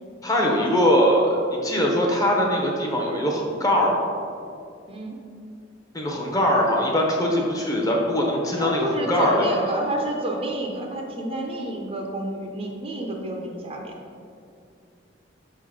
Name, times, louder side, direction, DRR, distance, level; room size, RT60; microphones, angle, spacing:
voice 1, 0.2-1.3 1.6-4.1 5.9-9.6, equal, 20° left, -1 dB, 0.8 m, -21 dB
voice 2, 4.9-5.2 8.6-14.0, right 1 dB, 30° right, 1 dB, 0.6 m, -29 dB
6.2 x 3.7 x 4.9 m, 2.4 s
head